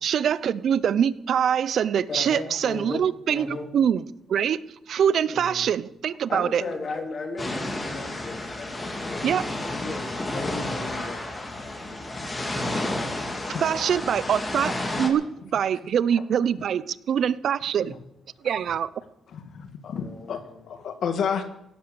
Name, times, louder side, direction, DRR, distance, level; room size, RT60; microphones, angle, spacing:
voice 1, 0.0-4.0 4.3-4.6 4.9-6.6 9.2-9.4 13.6-15.2 15.5-17.9 18.4-18.9, right 8 dB, 65° right, 18 dB, 0.7 m, -24 dB
voice 2, 2.1-3.7 5.3-5.7 6.3-12.6 13.4-13.8 14.1-14.3 17.8-17.9 19.9-20.6, left 3 dB, 45° left, 4 dB, 3.2 m, -37 dB
sound 1, 7.4-15.1, left 1 dB, 25° left, 3.6 m, -31 dB
voice 3, 19.3-21.4, left 7 dB, 65° left, 8 dB, 1.9 m, -31 dB
17.0 x 11.0 x 7.0 m, 0.85 s
cardioid pair, 90°, 0 cm